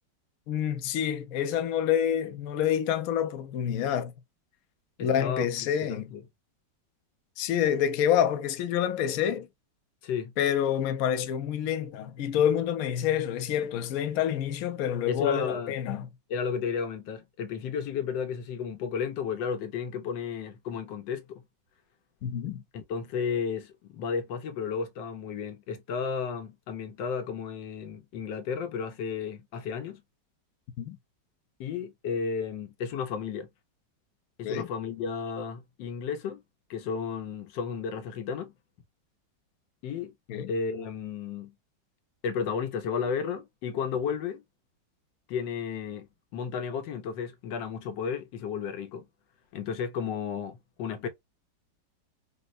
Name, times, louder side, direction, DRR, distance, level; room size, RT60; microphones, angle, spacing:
voice 1, 0.5-4.1 5.0-6.1 7.4-9.5 10.4-16.1 22.2-22.6 30.8-31.0 34.4-34.7 40.3-40.5, left 9 dB, 70° left, 0.8 m, -27 dB
voice 2, 5.0-6.2 10.0-10.3 15.1-15.7 16.3-21.4 22.7-30.0 31.6-33.5 34.4-36.4 36.7-38.5 39.8-40.1 40.5-41.5 42.2-44.4 45.3-46.1 46.3-49.0 49.5-51.1, left 6 dB, 85° left, 1.4 m, -33 dB
4.3 x 2.0 x 2.5 m
omnidirectional pair, 2.0 m